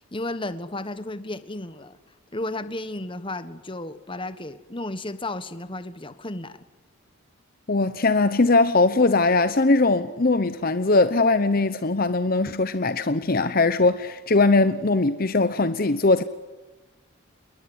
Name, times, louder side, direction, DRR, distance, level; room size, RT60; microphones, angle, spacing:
voice 1, 0.0-2.0 2.3-6.7, left 2 dB, 25° left, 1.3 m, -33 dB
voice 2, 7.7-16.2, left 3 dB, 45° left, 0.9 m, -20 dB
28.5 x 21.5 x 9.7 m
head